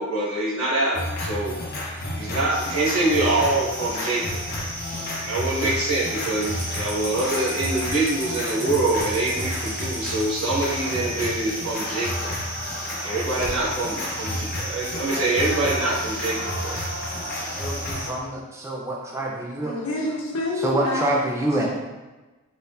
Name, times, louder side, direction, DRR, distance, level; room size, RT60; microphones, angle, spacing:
voice 1, 0.0-1.5 2.1-4.4 5.2-12.3 13.0-16.4 16.6-16.7, right 2 dB, 80° right, -6 dB, 1.2 m, -25 dB
sound 1, 0.9-18.1, left 1 dB, 45° left, 0.7 m, -32 dB
sound 2, 2.5-18.1, right 1 dB, 45° right, 1.2 m, -35 dB
voice 2, 17.5-19.7 20.6-21.7, right 1 dB, 15° right, -2 dB, 0.4 m, -26 dB
voice 3, 19.6-21.3 21.6-21.7, left 1 dB, 85° left, -3 dB, 1.0 m, -28 dB
4.0 x 3.9 x 2.5 m, 1.2 s
head